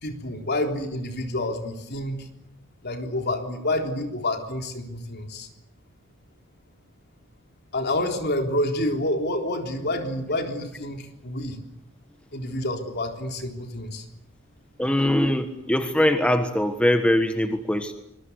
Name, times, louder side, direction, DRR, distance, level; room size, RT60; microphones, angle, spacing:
voice 1, 0.0-2.2 2.8-5.5 7.7-11.6 12.3-14.0, left 1 dB, 50° left, 4 dB, 3.7 m, -28 dB
voice 2, 14.8-17.9, left 1 dB, 5° left, 6 dB, 1.4 m, -22 dB
26.0 x 22.0 x 8.2 m, 0.83 s
head